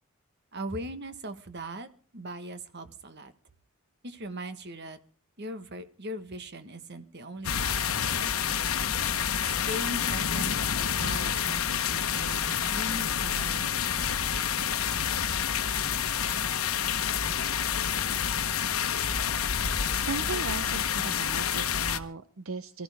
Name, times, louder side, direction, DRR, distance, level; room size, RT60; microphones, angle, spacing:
voice 1, 0.5-1.9 2.1-3.3 4.0-5.0 5.4-8.7 9.4-14.6, right 1 dB, 55° right, 10 dB, 1.4 m, -40 dB
sound 1, 7.4-22.0, left 8 dB, 85° left, 1.0 m, -28 dB
voice 2, 19.9-22.8, right 4 dB, 75° right, 11 dB, 0.8 m, -37 dB
23.5 x 14.5 x 3.5 m, 0.37 s
head